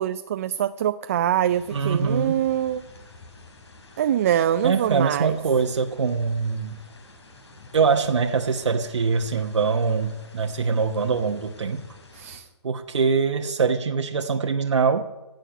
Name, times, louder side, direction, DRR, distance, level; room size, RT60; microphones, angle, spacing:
voice 1, 0.0-2.8 4.0-5.4 12.1-12.5, right 10 dB, 30° right, 10 dB, 0.4 m, -24 dB
sound 1, 1.5-12.4, left 3 dB, 70° left, 4.4 m, -48 dB
voice 2, 1.7-2.3 4.6-6.8 7.7-11.9 12.6-15.0, right 5 dB, 80° right, 3 dB, 1.1 m, -23 dB
16.5 x 6.7 x 9.9 m, 1.1 s
hypercardioid pair, 155°, 15 cm